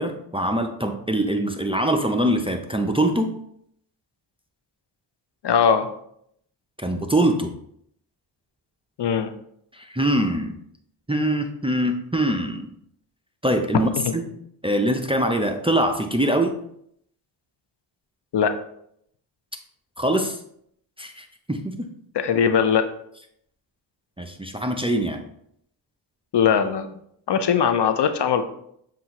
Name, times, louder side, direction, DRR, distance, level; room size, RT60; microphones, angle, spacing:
voice 1, 0.0-3.3 6.8-7.5 9.7-10.5 11.1-12.7 13.4-14.3 14.6-16.5 20.0-20.4 21.0-21.9 24.2-25.2, right 1 dB, 10° right, 5 dB, 0.4 m, -23 dB
voice 2, 5.4-5.9 9.0-9.3 14.1-14.2 18.3-18.5 22.2-22.9 26.3-26.9 27.3-28.4, left 7 dB, 55° left, 9 dB, 0.6 m, -20 dB
7.3 x 2.5 x 2.9 m, 0.71 s
cardioid pair, 50°, 50 cm